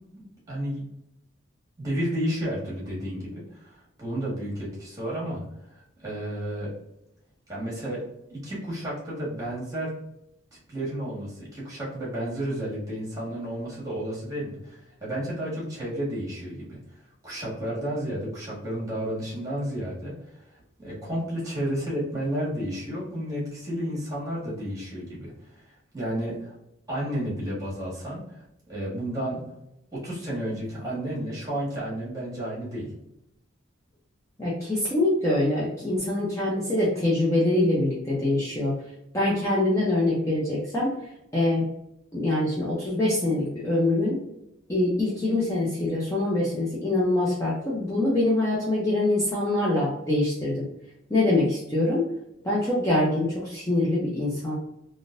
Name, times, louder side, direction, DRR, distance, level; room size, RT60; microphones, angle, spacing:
voice 1, 0.1-0.8 1.8-5.4 5.7-6.7 7.5-8.0 8.3-9.9 10.7-16.8 17.2-20.1 20.8-25.7 25.9-26.5 26.9-28.4 28.7-29.4 29.9-32.9, right 1 dB, 15° right, -6 dB, 1.5 m, -32 dB
voice 2, 34.4-38.7 39.1-40.9 41.3-41.7 42.1-44.2 44.7-50.7 51.1-52.0 52.4-54.6, left 2 dB, 15° left, -7 dB, 0.6 m, -24 dB
3.6 x 2.5 x 2.5 m, 0.83 s
head